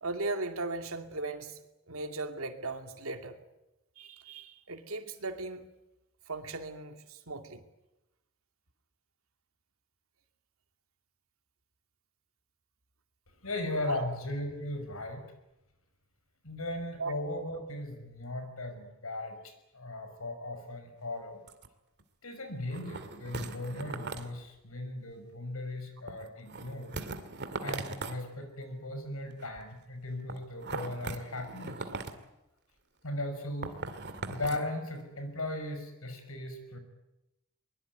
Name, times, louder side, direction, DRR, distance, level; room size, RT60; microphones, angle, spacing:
voice 1, 0.0-1.6 1.9-3.4 4.0-5.7 6.3-7.6 13.9-14.1 17.0-17.1, right 3 dB, 85° right, 7 dB, 2.5 m, -37 dB
voice 2, 13.4-15.2 16.4-21.4 22.2-27.0 27.6-31.8 33.0-33.7 34.3-36.8, left 1 dB, 85° left, 8 dB, 5.7 m, -37 dB
sound 1, 21.0-21.2 21.5-21.7 22.0-22.1 22.7-24.3 26.1-28.2 29.3-29.6 30.3-32.2 33.6-34.7 35.0-35.1, right 3 dB, 55° right, 2.3 m, -40 dB
23.5 x 22.0 x 9.3 m, 0.94 s
head